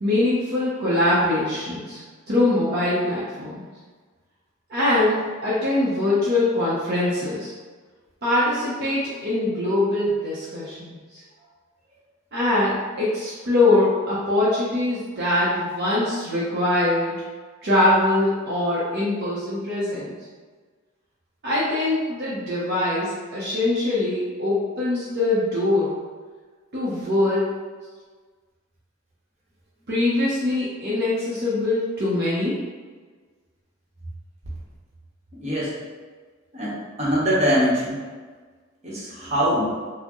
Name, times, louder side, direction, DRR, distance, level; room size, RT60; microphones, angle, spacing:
voice 1, 0.0-2.0 2.3-3.6 4.7-7.5 8.2-11.2 12.3-17.2 17.6-20.2 21.4-26.0 26.7-27.5 29.9-32.6, left 2 dB, 55° right, -8 dB, 0.7 m, -23 dB
voice 2, 35.4-35.7 36.5-38.0 38.8-39.7, equal, 35° right, -7 dB, 1.0 m, -23 dB
4.3 x 2.1 x 3.0 m, 1.5 s
head